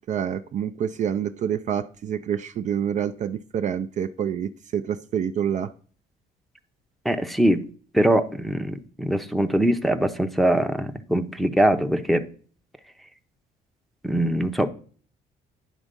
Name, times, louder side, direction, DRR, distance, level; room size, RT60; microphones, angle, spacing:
voice 1, 0.1-5.7, right 8 dB, 45° right, 0.4 m, -27 dB
voice 2, 7.0-7.6 7.9-12.3 14.0-14.7, right 1 dB, ahead, 0.6 m, -22 dB
10.0 x 3.6 x 5.2 m
cardioid pair, 110°, 17 cm